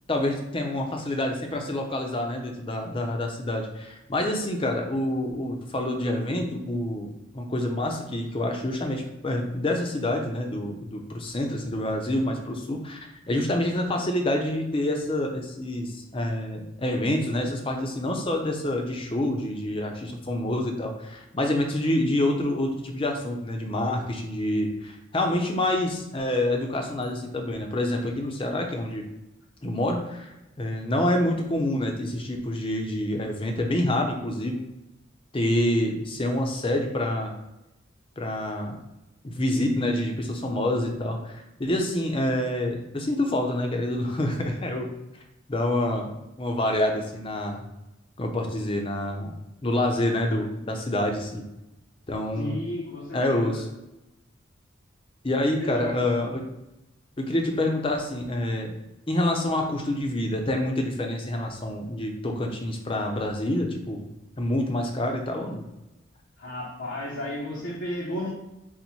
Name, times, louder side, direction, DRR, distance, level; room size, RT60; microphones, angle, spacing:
voice 1, 0.1-7.1 7.3-29.0 29.6-34.6 35.3-37.3 38.2-38.8 39.2-44.9 45.5-46.1 46.4-47.6 48.2-49.3 49.6-51.4 52.1-52.6 53.1-53.7 55.2-56.4 57.2-58.7 59.1-64.1 64.4-65.6, left 1 dB, 25° left, 2 dB, 0.5 m, -27 dB
voice 2, 52.4-53.6 55.6-56.3 66.4-68.3, left 1 dB, 65° left, -2 dB, 0.6 m, -33 dB
4.4 x 2.1 x 4.0 m, 0.94 s
head